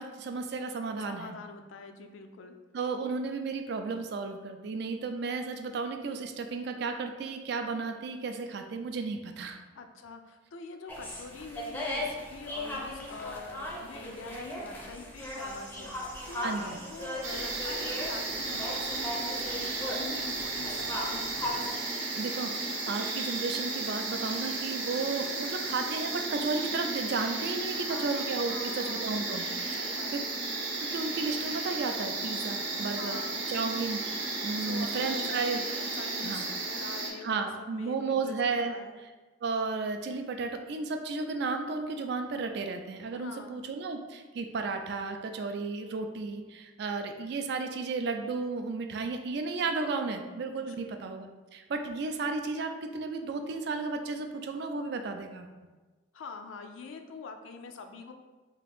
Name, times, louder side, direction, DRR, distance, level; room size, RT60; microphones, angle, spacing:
voice 1, 0.0-1.4 2.7-9.6 16.4-16.8 22.1-30.2 30.9-33.2 33.5-35.6 36.2-36.5 37.2-38.8 39.4-55.5, right 4 dB, 60° right, 5 dB, 0.3 m, -33 dB
voice 2, 1.0-2.5 9.7-21.3 27.7-30.4 32.9-33.4 34.5-39.0 43.1-43.6 50.7-51.0 56.1-58.1, left 4 dB, 90° left, 5 dB, 0.4 m, -45 dB
sound 1, 10.9-21.7, left 1 dB, 10° left, 0.5 m, -38 dB
sound 2, 15.2-26.3, right 2 dB, 30° right, 0.7 m, -51 dB
sound 3, 17.2-37.1, right 3 dB, 80° right, 0.7 m, -34 dB
3.5 x 2.5 x 3.4 m, 1.3 s
head